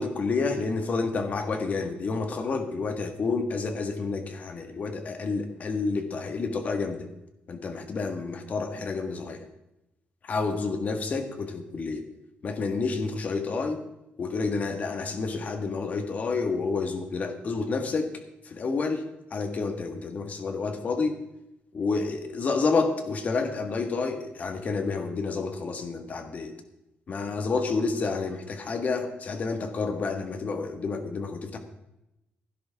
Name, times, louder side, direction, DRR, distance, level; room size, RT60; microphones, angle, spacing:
voice 1, 0.0-7.1 7.5-9.5 10.2-12.0 12.4-13.8 14.2-18.1 18.4-19.0 19.3-21.2 21.7-26.5 27.1-31.6, left 4 dB, 40° left, 6 dB, 1.7 m, -29 dB
16.5 x 10.5 x 3.6 m, 0.89 s
cardioid pair, 140°, 4 cm